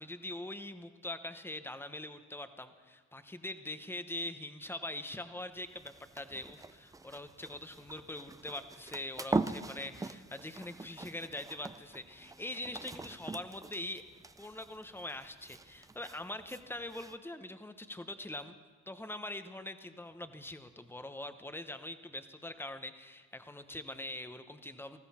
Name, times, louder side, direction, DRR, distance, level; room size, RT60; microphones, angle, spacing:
voice 1, 0.0-14.0 14.4-18.5 18.9-25.0, left 1 dB, 5° left, 9 dB, 0.9 m, -43 dB
sound 1, 5.5-17.2, right 3 dB, 10° right, 0.5 m, -42 dB
19.5 x 14.5 x 4.3 m, 1.4 s
cardioid pair, 90°, 30 cm